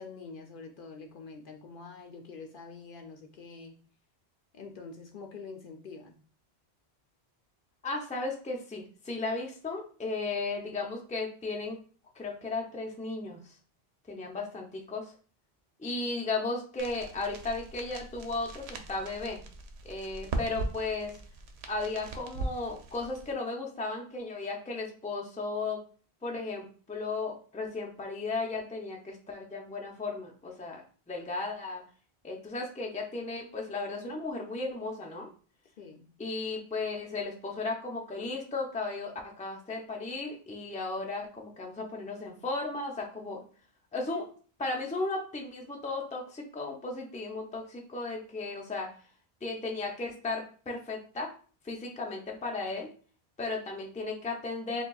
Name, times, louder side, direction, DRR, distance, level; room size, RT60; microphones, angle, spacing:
voice 1, 0.0-3.8 4.5-6.2 35.8-36.1, left 4 dB, 60° left, 3 dB, 0.7 m, -46 dB
voice 2, 7.8-11.8 12.1-13.5 14.1-15.1 15.8-19.4 19.8-21.2 21.7-25.8 26.2-31.8 32.2-35.3 36.2-43.4 43.9-44.3 44.6-48.9 49.4-51.3 51.6-52.9 53.4-54.8, left 3 dB, 10° left, 0 dB, 0.5 m, -35 dB
sound 1, 16.8-23.3, right 2 dB, 85° right, 0.9 m, -40 dB
6.2 x 2.3 x 2.3 m, 0.41 s
omnidirectional pair, 1.1 m